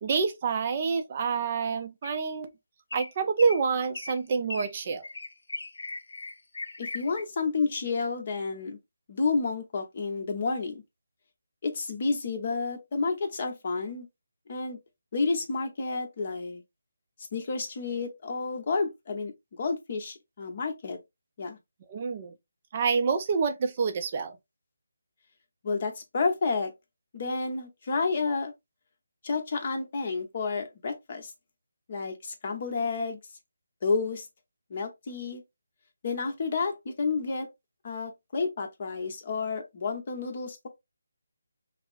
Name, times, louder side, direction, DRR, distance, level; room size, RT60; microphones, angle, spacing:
voice 1, 0.0-2.5 2.9-5.1 21.9-22.3 22.7-24.4, right 5 dB, 30° right, 0.4 m, -27 dB
sound 1, 2.0-2.4 2.9-3.1 3.4-3.6 3.9-4.2 4.5-4.7 5.0-7.2, left 2 dB, 70° left, 0.7 m, -38 dB
voice 2, 6.8-8.8 9.1-10.8 11.6-14.1 14.5-14.8 15.1-16.6 17.3-21.0 21.4-21.6 25.6-26.7 27.1-28.5 29.2-31.3 31.9-33.2 33.8-34.3 34.7-35.4 36.0-37.5 37.8-40.7, left 4 dB, 35° left, 0.9 m, -30 dB
5.6 x 2.0 x 2.5 m
figure-of-eight pair, 165°, 0 cm